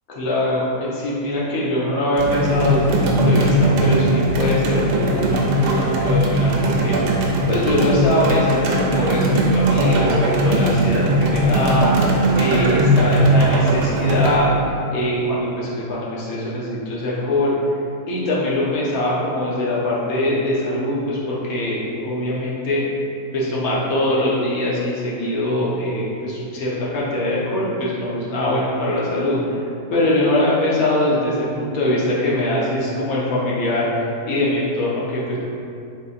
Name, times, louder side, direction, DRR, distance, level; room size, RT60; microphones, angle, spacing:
voice 1, 0.2-7.0 7.5-11.9 12.3-17.5 18.1-22.8 23.3-29.6 29.9-35.4, left 1 dB, 65° left, -6 dB, 1.2 m, -22 dB
sound 1, 2.2-14.4, right 1 dB, 80° right, 1.2 m, -19 dB
4.2 x 3.4 x 2.5 m, 2.6 s
omnidirectional pair, 1.8 m